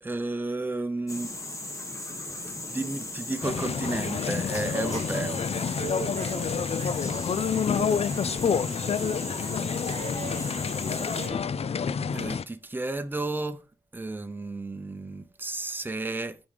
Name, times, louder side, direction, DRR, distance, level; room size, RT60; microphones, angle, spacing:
voice 1, 0.0-1.3 2.5-5.4 12.1-13.6 13.9-16.4, right 2 dB, 15° right, 0.7 m, -32 dB
sound 1, 1.1-11.3, left 2 dB, 20° left, 1.7 m, -37 dB
sound 2, 3.4-12.4, left 6 dB, 45° left, 0.4 m, -29 dB
voice 2, 4.7-5.1 5.8-8.5 9.0-11.4, right 5 dB, 50° right, 1.1 m, -40 dB
8.6 x 5.2 x 5.1 m
wide cardioid pair, 160°, 14 cm